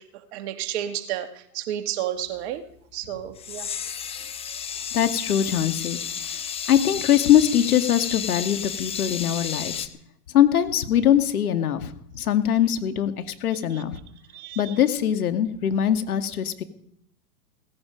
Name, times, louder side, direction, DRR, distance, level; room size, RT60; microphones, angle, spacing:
voice 1, 0.0-2.6 2.9-3.7 13.7-13.8 14.3-14.8, right 11 dB, 45° right, 9 dB, 1.8 m, -32 dB
sound 1, 3.4-9.9, left 8 dB, 15° left, 0.8 m, -32 dB
voice 2, 4.9-6.0 6.7-9.9 10.3-13.9 14.6-16.6, left 10 dB, 70° left, 8 dB, 2.2 m, -22 dB
17.5 x 15.5 x 5.2 m, 0.68 s
hypercardioid pair, 125°, 46 cm